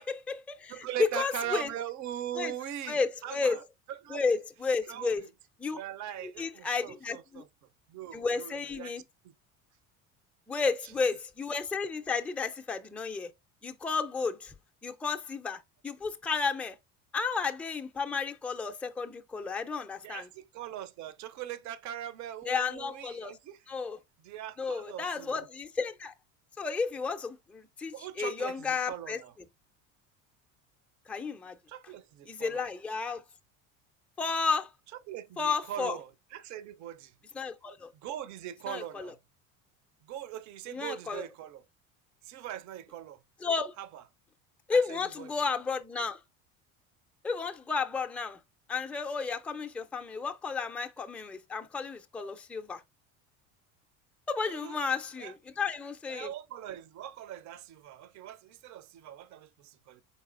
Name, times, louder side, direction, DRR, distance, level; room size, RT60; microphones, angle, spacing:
voice 1, 0.0-1.7 2.3-2.5 2.9-3.6 4.1-5.2 5.6-5.8 6.4-7.4 8.1-9.0 10.5-13.3 13.6-14.5 14.8-16.8 17.1-20.3 22.5-23.4 23.7-24.0 24.6-26.1 26.6-29.2 31.1-31.6 32.3-33.2 34.2-34.7 35.4-36.0 37.3-37.9 38.7-39.1 40.7-41.2 43.4-43.7 44.7-46.2 47.2-48.4 48.7-52.8 54.3-56.3, left 4 dB, 5° left, 0.4 m, -32 dB
voice 2, 0.7-4.2 4.9-5.1 5.7-7.5 7.9-8.9 9.2-9.3 10.6-10.7 20.0-23.6 24.2-25.5 27.9-29.3 31.7-32.7 35.1-37.1 38.0-39.2 40.0-41.6 42.2-43.2 43.8-44.0 44.7-45.3 54.4-54.8 55.2-55.3 56.1-60.0, right 11 dB, 45° right, 0.6 m, -41 dB
4.1 x 4.1 x 2.4 m
hypercardioid pair, 80°, 41 cm